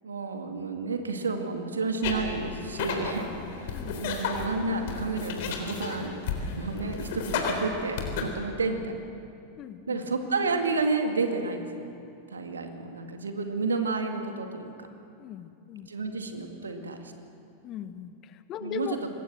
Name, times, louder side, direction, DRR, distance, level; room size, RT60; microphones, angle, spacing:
voice 1, 0.0-3.3 3.6-6.2 6.6-8.9 9.9-11.8 12.3-14.7 15.9-17.1 18.6-18.9, right 3 dB, 70° right, 5 dB, 2.1 m, -31 dB
sound 1, 2.0-8.2, left 5 dB, 50° left, 3.6 m, -33 dB
voice 2, 3.7-4.1 9.6-10.0 15.2-15.9 17.6-19.0, left 11 dB, 35° left, 12 dB, 1.1 m, -39 dB
25.5 x 20.5 x 7.6 m, 2.6 s
figure-of-eight pair, 90°, 0 cm